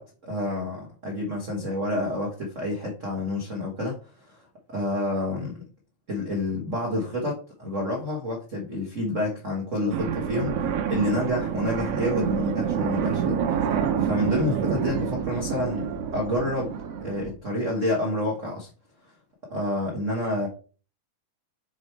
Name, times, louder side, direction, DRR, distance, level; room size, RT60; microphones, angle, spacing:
voice 1, 0.0-4.4 4.7-5.6 6.1-15.9 16.1-18.7 19.5-20.5, left 1 dB, 85° right, 0.6 m, -29 dB
sound 1, 9.9-17.3, right 8 dB, 70° right, 1.6 m, -27 dB
6.8 x 3.1 x 4.5 m
omnidirectional pair, 3.4 m